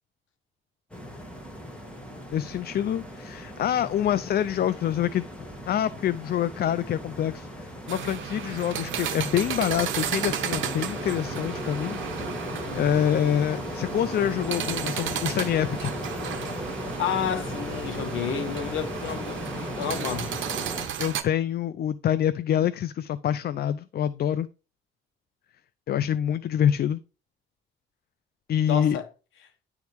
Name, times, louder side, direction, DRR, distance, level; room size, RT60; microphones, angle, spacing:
sound 1, 0.9-20.9, equal, 5° left, 2.3 m, -36 dB
voice 1, 2.3-5.3 5.7-12.0 12.7-15.9 21.0-24.5 25.9-27.0 28.5-29.0, left 10 dB, 50° left, 0.4 m, -26 dB
sound 2, 7.9-21.2, right 10 dB, 75° right, 1.0 m, -34 dB
voice 2, 12.5-12.9 17.0-20.3 28.7-29.0, left 8 dB, 80° left, 1.3 m, -31 dB
10.5 x 3.6 x 4.6 m
cardioid pair, 90°, 20 cm